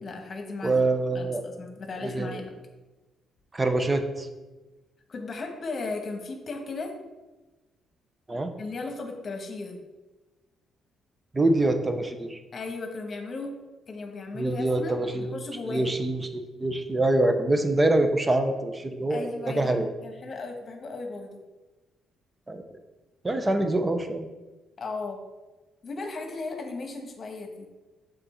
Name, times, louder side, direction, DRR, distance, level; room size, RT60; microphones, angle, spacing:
voice 1, 0.0-0.7 1.1-2.5 5.1-6.9 8.6-9.8 12.5-13.5 13.9-15.9 19.1-21.4 24.8-25.2 25.8-27.7, left 3 dB, 45° left, 3 dB, 1.2 m, -36 dB
voice 2, 0.6-1.4 2.0-2.4 3.5-4.3 8.3-8.5 11.3-12.4 14.3-15.4 15.7-19.9 22.5-22.6 23.2-24.2, right 2 dB, 20° right, 7 dB, 0.7 m, -25 dB
6.8 x 3.9 x 4.3 m, 1.2 s
cardioid pair, 90°, 0 cm